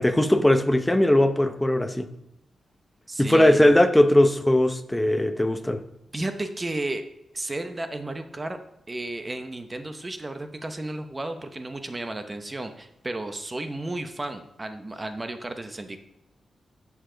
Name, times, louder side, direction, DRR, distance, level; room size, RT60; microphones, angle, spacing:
voice 1, 0.0-2.1 3.2-5.8, left 1 dB, 10° left, 8 dB, 0.8 m, -19 dB
voice 2, 3.1-3.7 6.1-7.0 7.3-8.6 8.9-16.0, right 2 dB, 20° right, 8 dB, 0.8 m, -33 dB
11.5 x 7.1 x 3.8 m, 0.86 s
wide cardioid pair, 120°, 0 cm